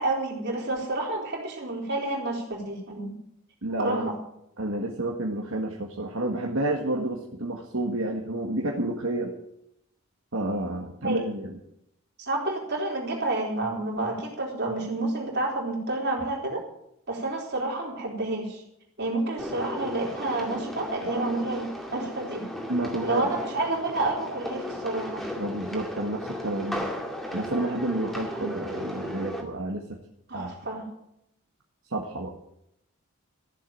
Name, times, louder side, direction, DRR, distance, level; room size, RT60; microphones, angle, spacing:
voice 1, 0.0-3.2 3.8-4.2 11.0-11.2 12.2-16.6 17.1-18.6 19.0-22.5 23.0-25.2 30.3-30.9, right 2 dB, 50° right, -1 dB, 4.1 m, -29 dB
voice 2, 3.6-4.1 4.6-9.3 10.3-11.5 22.7-23.3 25.4-26.9 27.3-30.0 30.3-30.6 31.9-32.3, right 1 dB, 65° right, 0 dB, 1.7 m, -30 dB
sound 1, 19.4-29.4, equal, ahead, 2.2 m, -35 dB
14.5 x 7.5 x 8.7 m, 0.79 s
head